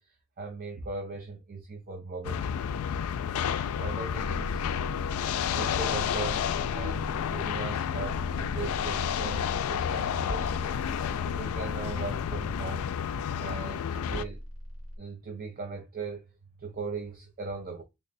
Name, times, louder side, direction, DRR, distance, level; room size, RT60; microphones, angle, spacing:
voice 1, 0.0-2.6 3.8-4.7 5.2-10.7 11.2-12.9 13.4-14.4 15.0-16.3 16.6-17.8, right 4 dB, 40° right, 0.5 m, -39 dB
sound 1, 2.2-14.2, left 8 dB, 80° left, 0.3 m, -30 dB
sound 2, 13.9-15.0, equal, 65° right, 1.8 m, -42 dB
3.4 x 2.1 x 3.9 m
head